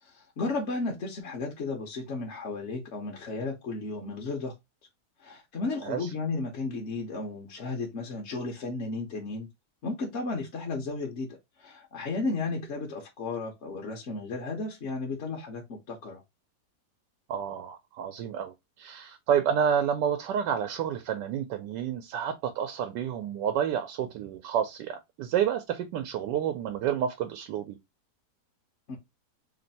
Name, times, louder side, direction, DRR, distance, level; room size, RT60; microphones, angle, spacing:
voice 1, 0.0-4.5 5.2-9.5 9.8-11.3 11.6-16.2 28.9-29.0, left 3 dB, 50° left, 1.0 m, -34 dB
voice 2, 17.3-27.8, right 8 dB, 85° right, 1.2 m, -29 dB
3.3 x 2.6 x 4.0 m
omnidirectional pair, 1.8 m